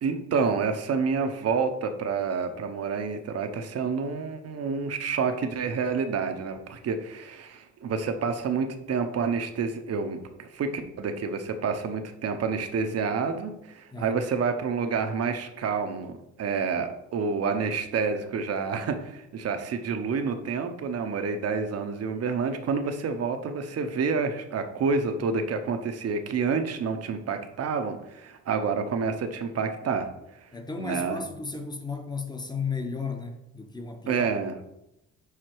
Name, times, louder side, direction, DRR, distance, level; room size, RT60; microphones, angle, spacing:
voice 1, 0.0-30.1 30.8-31.2 34.1-34.5, right 5 dB, 55° right, 7 dB, 0.8 m, -28 dB
voice 2, 30.5-34.3, left 4 dB, 15° left, 5 dB, 0.9 m, -34 dB
5.0 x 4.9 x 4.6 m, 0.87 s
cardioid pair, 90°, 30 cm